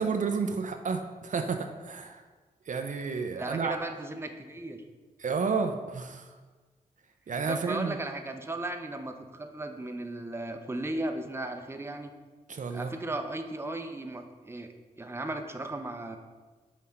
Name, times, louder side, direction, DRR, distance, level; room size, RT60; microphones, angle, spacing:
voice 1, 0.0-2.2 2.7-3.8 5.2-6.3 7.3-8.0 12.5-12.9, right 5 dB, 55° right, 5 dB, 0.5 m, -31 dB
voice 2, 3.3-4.8 7.5-12.1 12.7-16.2, right 2 dB, 15° right, 6 dB, 0.6 m, -36 dB
5.7 x 3.2 x 5.7 m, 1.3 s
supercardioid pair, 45°, 16 cm